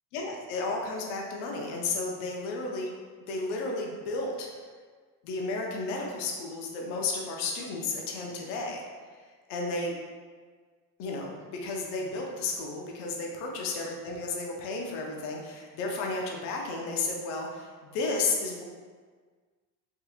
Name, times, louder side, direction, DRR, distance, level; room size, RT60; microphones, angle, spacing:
voice 1, 0.1-2.9 3.3-4.5 5.2-8.8 9.5-9.9 11.0-18.6, left 3 dB, 90° left, 0 dB, 0.6 m, -33 dB
3.5 x 2.8 x 2.4 m, 1.5 s
supercardioid pair, 90°, 40 cm